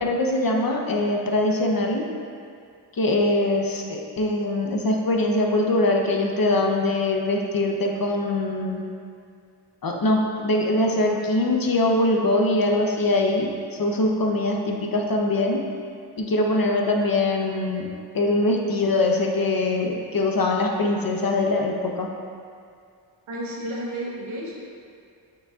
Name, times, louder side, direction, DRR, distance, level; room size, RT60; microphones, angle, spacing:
voice 1, 0.0-2.0 3.0-8.9 9.8-15.6 16.2-17.9 18.1-22.1, left 2 dB, 45° left, 1 dB, 0.9 m, -22 dB
voice 2, 23.3-24.6, right 1 dB, 80° right, -4 dB, 1.3 m, -32 dB
6.5 x 6.3 x 2.4 m, 2.3 s
cardioid pair, 45°, 47 cm